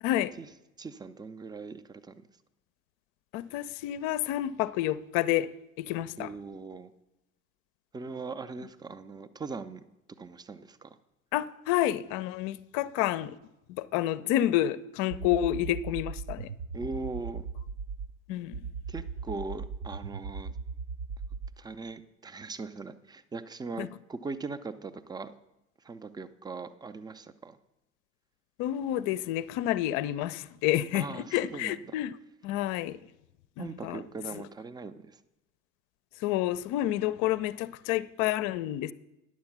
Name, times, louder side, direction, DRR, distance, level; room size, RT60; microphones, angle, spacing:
voice 1, 0.0-0.3 3.3-5.5 5.8-6.3 11.3-13.4 13.7-16.5 18.3-18.6 23.8-23.9 28.6-32.1 32.4-33.0 33.6-34.0 34.3-34.4 36.2-38.9, left 13 dB, 50° left, 16 dB, 0.5 m, -29 dB
voice 2, 0.8-2.1 6.2-6.9 7.9-9.8 10.2-11.0 16.7-17.5 18.9-20.5 21.6-25.3 25.8-27.6 30.9-32.0 33.6-35.2, right 3 dB, 10° right, 12 dB, 0.5 m, -40 dB
sound 1, 15.1-18.1 18.5-21.5, right 5 dB, 55° right, 0.7 m, -38 dB
10.5 x 7.4 x 5.9 m, 0.93 s
figure-of-eight pair, 60°, 39 cm